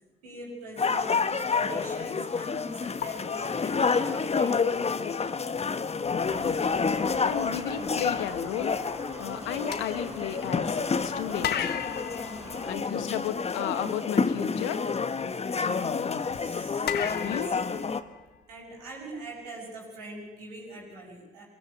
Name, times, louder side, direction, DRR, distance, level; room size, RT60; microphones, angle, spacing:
voice 1, 0.2-4.8 12.2-12.8 16.2-17.5 18.3-21.4, right 1 dB, 85° right, -3 dB, 6.7 m, -43 dB
sound 1, 0.8-18.0, left 5 dB, 35° left, 1.3 m, -29 dB
sound 2, 3.0-4.3 5.6-5.7 6.1-6.3 9.7-10.9 11.4-13.5 16.9-18.7, left 9 dB, 60° left, 1.4 m, -36 dB
sound 3, 6.2-12.7, right 2 dB, 20° right, 4.4 m, -46 dB
voice 2, 7.2-8.7 9.2-11.7 12.6-14.8 15.6-16.2 17.2-17.5, left 10 dB, 75° left, 10 dB, 1.6 m, -34 dB
24.0 x 17.0 x 8.5 m, 1.2 s
hypercardioid pair, 50°, 19 cm